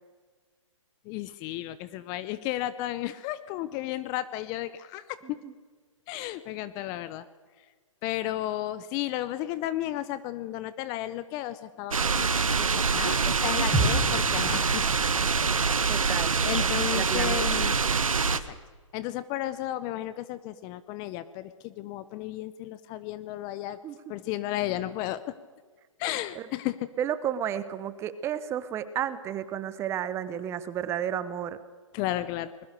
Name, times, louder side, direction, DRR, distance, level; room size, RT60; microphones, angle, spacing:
voice 1, 1.1-5.2 6.1-7.2 8.0-14.8 16.4-17.7 18.3-18.6 18.9-23.8 24.1-25.3 26.0-26.9 31.9-32.5, left 14 dB, 20° left, 15 dB, 0.7 m, -33 dB
voice 2, 5.2-5.5 15.9-16.4 16.9-17.4 23.8-24.1 26.3-26.5 27.0-31.6, right 10 dB, 15° right, 14 dB, 1.0 m, -32 dB
sound 1, 11.9-18.4, right 5 dB, 90° right, 1.6 m, -25 dB
sound 2, 13.7-17.7 18.0-18.1, right 1 dB, ahead, 7.1 m, -33 dB
22.5 x 21.0 x 6.7 m, 1.5 s
hypercardioid pair, 145°, 17 cm